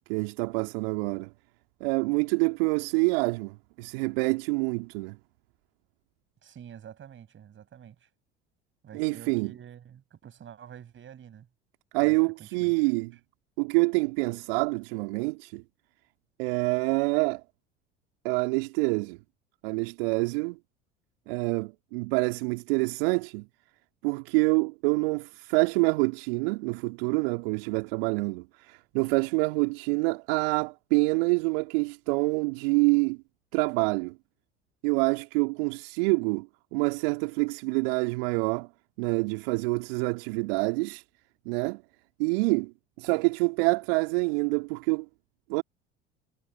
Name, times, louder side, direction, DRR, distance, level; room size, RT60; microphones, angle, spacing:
voice 1, 0.1-1.3 1.8-5.2 8.9-9.5 11.9-13.2 13.6-15.6 16.4-17.4 18.2-19.2 19.6-20.6 21.3-23.5 24.0-33.2 33.5-34.2 34.8-38.7 39.0-41.0 41.4-41.8 42.2-45.1 45.5-45.6, right 29 dB, 65° right, 2.7 m, -26 dB
voice 2, 6.4-8.1 8.8-11.5 12.0-12.1 12.4-12.7, right 9 dB, 40° right, 6.3 m, -48 dB
figure-of-eight pair, 65°, 30 cm